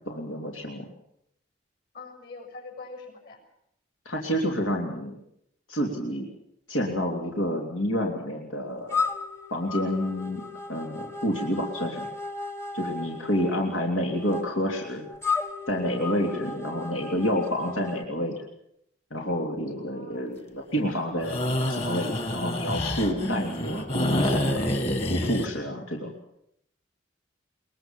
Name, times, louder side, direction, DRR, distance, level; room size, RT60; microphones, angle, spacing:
voice 1, 0.0-0.9 4.0-5.1 5.7-6.3 6.7-9.0 9.5-10.4 10.7-12.1 12.7-15.1 15.7-18.4 19.1-24.7 25.1-26.1, equal, 90° left, 0 dB, 3.2 m, -29 dB
voice 2, 1.9-3.4 19.8-20.4, left 3 dB, 55° left, 5 dB, 6.7 m, -44 dB
sound 1, 8.9-18.0, left 4 dB, 15° left, 1.1 m, -35 dB
sound 2, 21.2-25.5, left 1 dB, 30° left, 2.1 m, -28 dB
22.0 x 21.5 x 7.2 m, 0.76 s
head